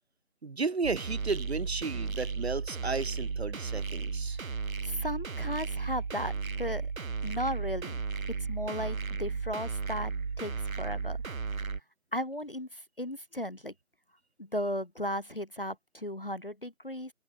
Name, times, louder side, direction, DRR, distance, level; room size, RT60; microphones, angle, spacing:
voice 1, 0.4-4.4, right 4 dB, 50° right, 0.6 m, -33 dB
sound 1, 0.8-11.8, right 5 dB, 75° right, 1.1 m, -34 dB
voice 2, 4.8-6.3 6.6-6.9 7.2-8.0 8.5-10.1 10.4-11.2 12.1-13.7 14.4-17.1, equal, 45° left, 0.4 m, -35 dB
open air
figure-of-eight pair, 165°, 41 cm